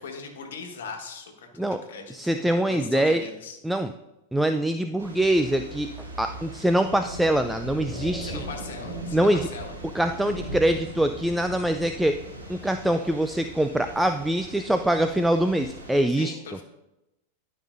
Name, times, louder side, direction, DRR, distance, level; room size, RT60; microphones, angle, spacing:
voice 1, 0.0-3.6 8.0-9.7 16.1-16.6, left 4 dB, 70° left, 4 dB, 1.4 m, -40 dB
voice 2, 2.1-3.2 3.6-3.9 4.3-5.9 6.2-8.4 9.1-9.5 9.9-12.2 12.5-16.3, right 1 dB, 5° right, 8 dB, 0.3 m, -24 dB
Thunder / Rain, 5.0-16.1, right 1 dB, 85° right, 2.1 m, -39 dB
12.0 x 5.5 x 2.5 m, 0.94 s
hypercardioid pair, 95°, 0 cm